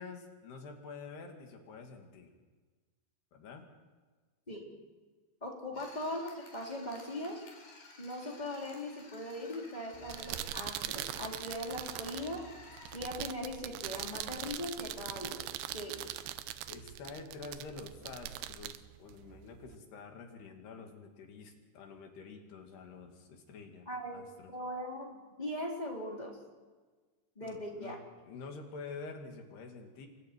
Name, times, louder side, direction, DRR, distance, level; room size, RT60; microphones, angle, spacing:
voice 1, 0.0-2.3 3.3-3.7 5.7-5.8 16.7-24.5 27.4-30.1, left 4 dB, 85° left, 3 dB, 4.5 m, -48 dB
voice 2, 5.4-7.4 8.0-12.4 12.9-16.0 23.9-24.2 24.5-26.4 27.4-28.0, left 1 dB, 10° left, -2 dB, 3.9 m, -40 dB
sound 1, 5.7-13.0, left 3 dB, 65° left, 5.6 m, -54 dB
sound 2, 9.9-19.8, right 13 dB, 85° right, 2.8 m, -42 dB
29.0 x 24.0 x 4.7 m, 1.4 s
omnidirectional pair, 4.6 m